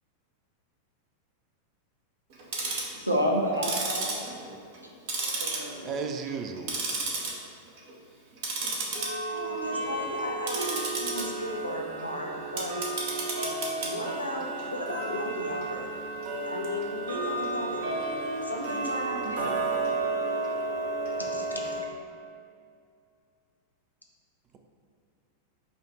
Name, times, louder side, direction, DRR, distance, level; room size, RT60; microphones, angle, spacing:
Tick-tock, 2.3-3.0 3.5-4.8 5.1-6.0 6.3-7.3 7.7-7.9 8.4-21.8, right 3 dB, 50° right, 0.7 m, -32 dB
voice 1, 2.9-4.3 5.2-6.0, equal, 85° right, -1 dB, 0.6 m, -29 dB
voice 2, 5.8-6.8, right 5 dB, 30° right, 5 dB, 0.3 m, -34 dB
voice 3, 9.3-12.7 13.8-15.9 16.4-17.8 18.4-19.5 21.2-21.8, left 1 dB, 85° left, 0 dB, 0.5 m, -35 dB
5.0 x 2.4 x 4.4 m, 2.3 s
figure-of-eight pair, 90°, 0 cm